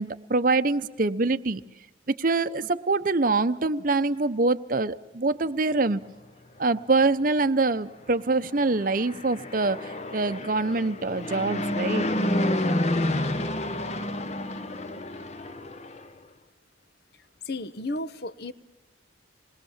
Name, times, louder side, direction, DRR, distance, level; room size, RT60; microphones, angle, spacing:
voice 1, 0.0-1.6 2.1-6.0 6.6-12.1, right 3 dB, 45° right, 10 dB, 0.8 m, -25 dB
Fixed-wing aircraft airplane, 8.7-16.1, left 1 dB, 35° left, 1.2 m, -29 dB
voice 2, 17.5-18.5, left 2 dB, 55° left, 13 dB, 1.1 m, -33 dB
27.5 x 21.5 x 7.3 m, 1.1 s
head